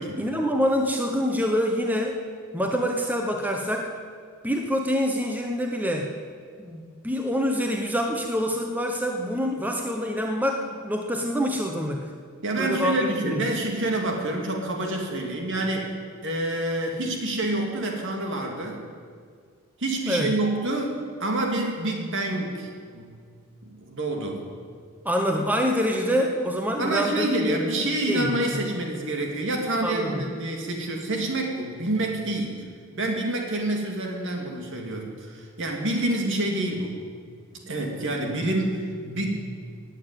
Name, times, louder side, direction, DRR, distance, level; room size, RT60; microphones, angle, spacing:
voice 1, 0.2-2.2 2.5-3.9 4.4-6.1 6.6-12.0 12.6-13.4 20.1-20.3 25.0-27.6 28.1-28.5 29.8-30.2, equal, 10° right, 2 dB, 1.0 m, -26 dB
voice 2, 12.4-15.9 16.2-18.8 19.8-23.1 23.6-24.4 26.8-32.6 33.0-37.0 37.7-39.4, right 1 dB, 60° right, 1 dB, 2.8 m, -27 dB
17.0 x 9.1 x 9.1 m, 2.1 s
head